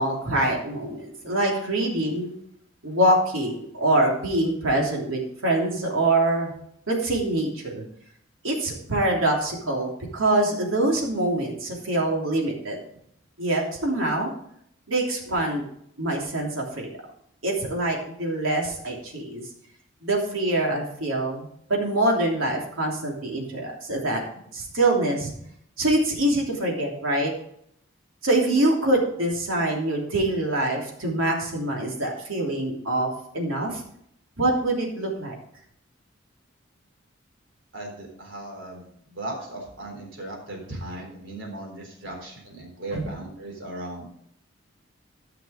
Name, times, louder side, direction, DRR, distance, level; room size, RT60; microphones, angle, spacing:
voice 1, 0.0-2.3 2.8-6.5 6.9-7.8 8.4-12.8 13.4-14.3 14.9-15.6 16.0-16.9 17.4-19.4 20.0-24.2 24.5-25.3 25.8-27.3 28.2-33.8 34.4-35.3 42.9-43.0, right 1 dB, 85° right, -1 dB, 3.2 m, -24 dB
voice 2, 37.7-44.1, right 1 dB, 65° right, 0 dB, 3.9 m, -37 dB
14.0 x 6.0 x 5.1 m, 0.70 s
head